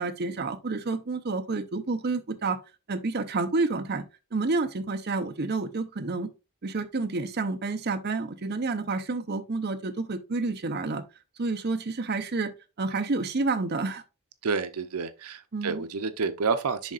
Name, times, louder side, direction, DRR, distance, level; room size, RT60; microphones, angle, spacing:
voice 1, 0.0-2.6 2.9-4.0 4.3-6.3 6.6-11.0 11.4-12.5 12.8-14.0 15.5-15.8, right 3 dB, 50° right, 0.6 m, -29 dB
voice 2, 14.4-16.9, right 4 dB, 90° right, 0.6 m, -29 dB
10.5 x 3.7 x 2.4 m
head